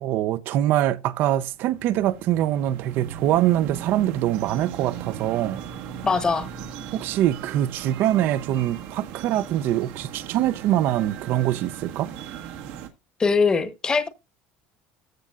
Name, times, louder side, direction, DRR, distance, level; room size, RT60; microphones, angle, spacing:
voice 1, 0.0-5.6 6.9-12.1, right 13 dB, 55° right, 0.6 m, -24 dB
sound 1, 1.5-12.9, right 9 dB, 75° right, 1.4 m, -37 dB
voice 2, 6.0-6.5 13.2-14.1, left 4 dB, 20° left, 1.0 m, -21 dB
14.5 x 6.5 x 2.4 m
cardioid pair, 145°, 4 cm